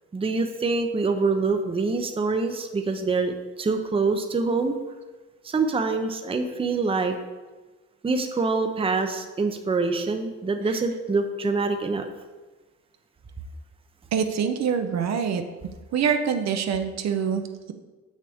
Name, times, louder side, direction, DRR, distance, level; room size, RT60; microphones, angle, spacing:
voice 1, 0.1-4.8 5.4-7.2 8.0-12.1, right 3 dB, 20° right, 6 dB, 0.6 m, -25 dB
voice 2, 14.1-15.4 15.9-17.7, right 7 dB, 60° right, 7 dB, 0.7 m, -25 dB
6.6 x 6.4 x 3.5 m, 1.3 s
cardioid pair, 90°, 30 cm